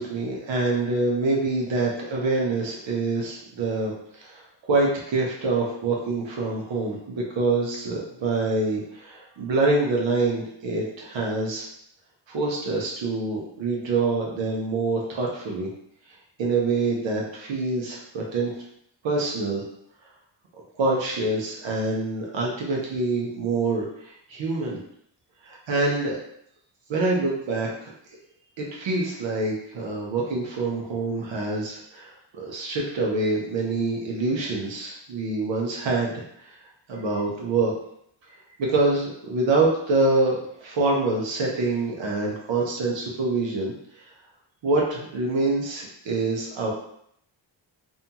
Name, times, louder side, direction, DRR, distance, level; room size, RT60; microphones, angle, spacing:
voice 1, 0.0-4.4 4.7-11.7 12.3-15.7 16.4-18.6 19.0-19.6 20.8-24.8 25.4-26.2 26.9-27.9 28.6-36.1 36.4-36.5 36.9-37.7 38.6-43.7 44.6-46.7, right 3 dB, 70° right, -2 dB, 0.7 m, -25 dB
2.6 x 2.2 x 2.7 m, 0.72 s
cardioid pair, 55°, 47 cm